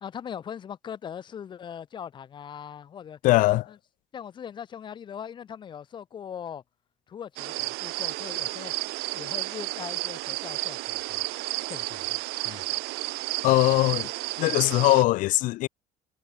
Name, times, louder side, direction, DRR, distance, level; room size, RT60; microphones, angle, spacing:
voice 1, 0.0-3.2 3.7-3.8 4.1-6.6 7.1-8.7 9.1-11.2 11.7-12.2 12.4-12.6, left 8 dB, 30° left, 2.8 m, -40 dB
voice 2, 3.2-3.7 13.4-14.1 14.4-15.7, left 18 dB, 55° left, 0.5 m, -21 dB
sound 1, 7.4-15.0, right 25 dB, 80° right, 0.9 m, -32 dB
cardioid pair, 180°, 17 cm